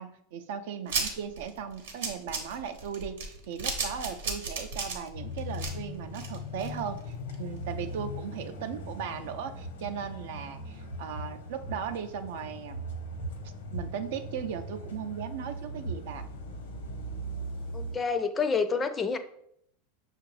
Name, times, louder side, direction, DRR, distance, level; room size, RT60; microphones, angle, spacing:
voice 1, 0.0-12.8 13.7-16.2, right 7 dB, 70° right, 8 dB, 0.4 m, -37 dB
sound 1, 0.9-7.0 7.3-7.4 7.7-7.8, right 4 dB, 90° right, 0.9 m, -34 dB
sound 2, 5.1-17.9, equal, 90° left, 0.9 m, -39 dB
voice 2, 17.7-19.2, left 5 dB, 20° left, 10 dB, 0.4 m, -28 dB
5.9 x 2.4 x 3.2 m, 0.71 s
supercardioid pair, 115°, 0 cm